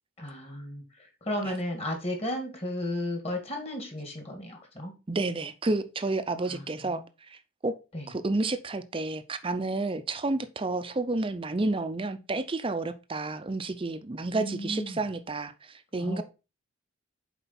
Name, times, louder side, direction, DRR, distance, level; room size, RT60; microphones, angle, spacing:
voice 1, 0.2-4.9 6.5-7.0 7.9-8.1 14.4-15.1 15.9-16.2, left 1 dB, 30° left, 2.0 m, -34 dB
voice 2, 5.1-7.0 7.3-7.7 8.1-16.2, right 2 dB, 25° right, 0.5 m, -30 dB
7.0 x 4.5 x 4.2 m
head